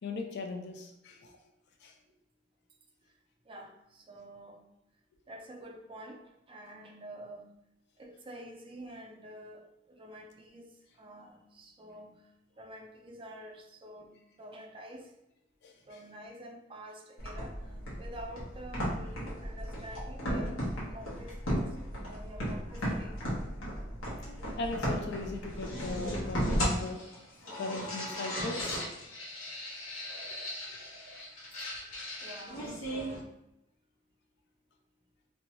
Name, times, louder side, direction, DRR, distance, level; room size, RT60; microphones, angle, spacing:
voice 1, 0.0-1.3 1.8-1.9 15.6-16.0 24.6-27.0 27.6-28.8 30.7-30.8, left 3 dB, 55° left, 3 dB, 0.4 m, -39 dB
voice 2, 3.5-4.6 5.3-6.2 6.5-7.5 8.0-10.7 11.0-12.2 12.6-15.1 15.9-17.5 18.0-20.6 20.9-21.4 21.8-23.2 32.2-33.2, right 1 dB, 25° right, 2 dB, 0.4 m, -48 dB
sound 1, 17.2-33.2, equal, 75° left, 0.9 m, -36 dB
2.6 x 2.2 x 2.9 m, 0.84 s
head